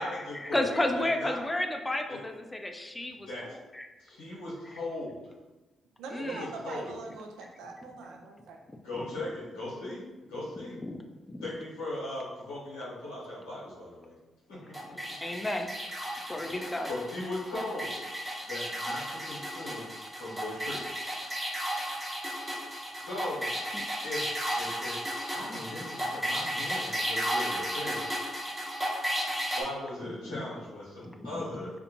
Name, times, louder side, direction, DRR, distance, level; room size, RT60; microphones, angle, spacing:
voice 1, 0.0-3.9 4.6-4.8 6.1-6.5 8.9-9.1 10.8-11.0 11.3-11.5 15.2-15.7 16.3-16.9 23.7-23.8 30.2-30.4 31.2-31.6, left 1 dB, 20° left, 4 dB, 0.3 m, -33 dB
voice 2, 1.0-1.3 3.3-3.4 4.1-5.2 6.2-6.9 8.8-10.0 10.3-10.8 11.4-14.1 14.6-14.7 16.4-16.6 16.9-18.0 18.5-19.0 19.3-19.9 20.2-20.8 23.0-23.4 24.0-24.2 24.6-24.9 25.3-28.0 29.6-31.7, left 1 dB, 85° left, -8 dB, 1.0 m, -38 dB
voice 3, 6.0-8.6, right 3 dB, 75° right, 2 dB, 0.3 m, -42 dB
sound 1, 14.7-29.6, equal, 20° right, 0.8 m, -34 dB
2.5 x 2.1 x 2.9 m, 1.1 s
hypercardioid pair, 45°, 0 cm